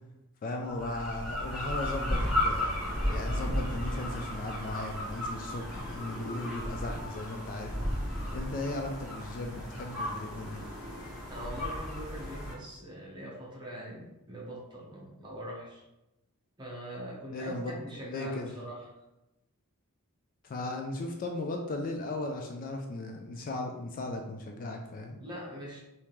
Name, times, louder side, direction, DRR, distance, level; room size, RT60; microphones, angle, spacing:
voice 1, 0.4-2.8 3.1-10.6 17.3-17.7 18.1-18.5 20.4-25.2, left 2 dB, 40° left, 3 dB, 0.3 m, -37 dB
sound 1, 0.7-12.5, left 1 dB, 5° right, 1.3 m, -34 dB
voice 2, 11.3-15.8 16.6-18.9 25.2-25.8, equal, 20° right, -5 dB, 1.1 m, -42 dB
3.5 x 2.8 x 3.0 m, 0.94 s
head